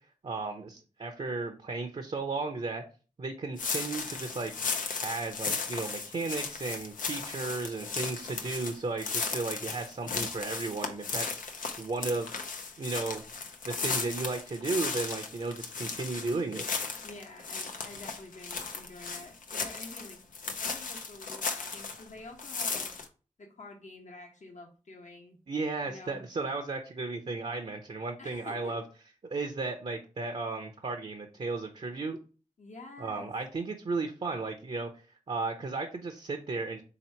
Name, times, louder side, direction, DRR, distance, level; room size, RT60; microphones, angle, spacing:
voice 1, 0.2-2.8 3.2-4.5 5.0-12.3 12.8-13.2 13.6-16.7 25.5-28.8 29.2-32.2 33.0-34.9 35.3-36.8, right 3 dB, 50° right, 5 dB, 0.6 m, -34 dB
sound 1, 3.6-22.1 22.4-23.1, left 4 dB, 85° left, 0.6 m, -36 dB
voice 2, 17.0-20.2 20.6-22.9 23.4-25.4 25.8-26.2 28.2-28.8 32.6-33.3, left 2 dB, 65° left, 0 dB, 1.0 m, -48 dB
3.6 x 2.9 x 4.4 m, 0.36 s
cardioid pair, 50°, 13 cm